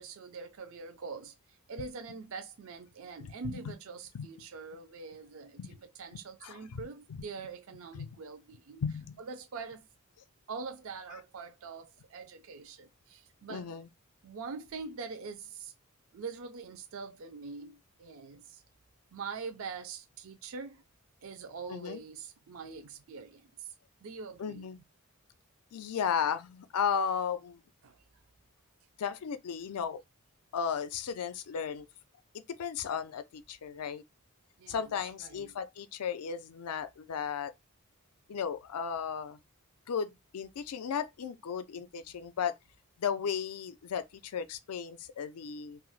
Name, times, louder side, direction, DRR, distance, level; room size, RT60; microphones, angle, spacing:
voice 1, 0.0-8.8 9.2-9.9 10.5-13.7 14.2-15.7 16.1-18.6 19.1-20.8 21.2-23.7 24.0-24.7 27.8-28.0 34.6-34.9 35.2-35.5, right 4 dB, 65° right, 0.4 m, -44 dB
voice 2, 3.2-3.7 4.1-4.3 5.6-5.7 6.1-6.8 7.1-7.2 7.9-8.1 8.8-9.2 13.5-13.9 21.7-22.0 24.4-24.8 25.7-27.6 29.0-30.0 30.5-31.9 32.3-34.0 34.7-37.5 38.3-39.4 39.9-42.6 43.0-45.8, left 7 dB, 90° left, 0.4 m, -35 dB
2.5 x 2.0 x 3.8 m
head